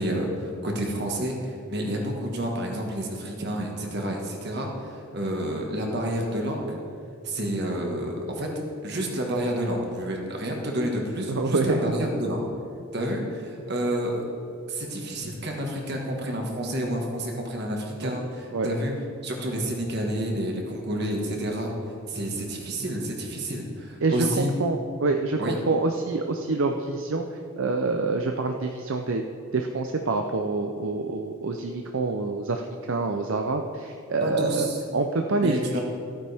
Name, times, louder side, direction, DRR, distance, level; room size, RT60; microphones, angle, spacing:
voice 1, 0.0-6.8 7.2-8.5 8.8-12.4 12.9-14.2 14.7-18.9 19.2-21.7 22.1-24.5 25.4-25.6 34.2-34.8 35.4-35.8, right 1 dB, 50° right, 0 dB, 1.6 m, -29 dB
voice 2, 11.3-11.9 18.0-18.2 18.5-18.7 24.0-27.3 27.6-29.2 29.5-34.7 34.9-35.8, right 3 dB, 65° right, 4 dB, 0.5 m, -26 dB
14.5 x 8.8 x 3.5 m, 2.7 s
head